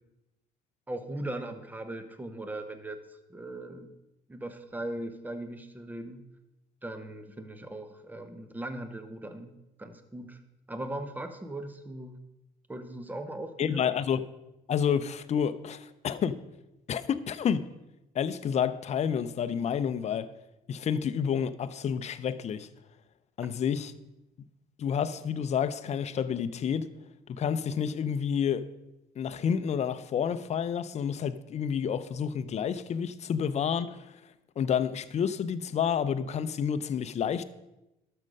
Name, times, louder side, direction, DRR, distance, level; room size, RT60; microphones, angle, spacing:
voice 1, 0.9-3.0 3.3-3.9 4.3-6.2 6.8-9.5 9.8-10.4 10.7-12.2 12.7-13.8, right 1 dB, 10° right, 1.0 m, -39 dB
voice 2, 13.6-14.3 14.7-16.4 16.9-17.7 18.1-20.3 20.7-22.7 23.4-23.9 24.8-26.9 27.3-28.7 29.2-34.2 34.6-37.4, left 7 dB, 40° left, 0.6 m, -29 dB
12.0 x 6.6 x 5.3 m
cardioid pair, 110°, 17 cm